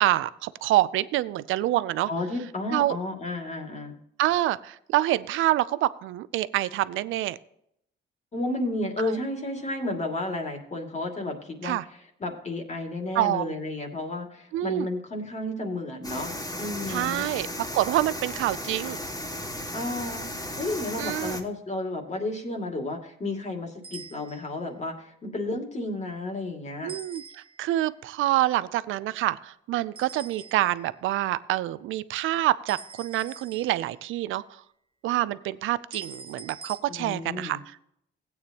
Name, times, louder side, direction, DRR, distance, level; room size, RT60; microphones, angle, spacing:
voice 1, 0.0-2.1 2.7-3.0 4.2-7.4 9.0-9.2 11.6-11.8 13.1-13.5 14.5-14.9 16.9-19.0 21.0-21.4 26.8-27.2 27.6-34.6 35.0-37.8, right 15 dB, 85° right, 17 dB, 0.5 m, -26 dB
voice 2, 2.1-4.0 8.3-11.8 12.2-17.3 19.7-20.3 20.6-26.9 37.0-37.6, left 2 dB, 35° left, 3 dB, 2.4 m, -32 dB
sound 1, 16.0-21.4, left 1 dB, 20° left, 2.2 m, -35 dB
sound 2, 23.8-24.6 26.9-27.8 29.9-30.9 32.7-34.1 35.9-36.8, right 4 dB, 25° right, 0.9 m, -44 dB
16.0 x 8.8 x 3.0 m, 0.72 s
cardioid pair, 90°, 20 cm